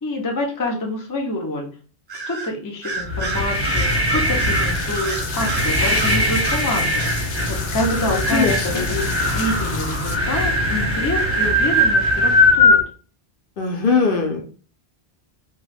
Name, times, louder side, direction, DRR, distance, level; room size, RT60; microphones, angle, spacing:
voice 1, 0.0-1.7 2.3-7.1 7.5-12.8, left 1 dB, 25° left, 1 dB, 0.5 m, -27 dB
Bird vocalization bird call bird song, 2.1-2.5 2.8-6.7 7.0-7.2, right 4 dB, 40° right, 0.8 m, -29 dB
sound 1, 3.0-12.8, left 1 dB, 15° right, 0.9 m, -20 dB
sound 2, 3.6-10.2, left 6 dB, 85° left, 0.9 m, -34 dB
voice 2, 8.3-8.9 13.6-14.5, left 4 dB, 60° left, 2 dB, 0.8 m, -20 dB
2.9 x 2.3 x 3.3 m, 0.39 s
omnidirectional pair, 1.1 m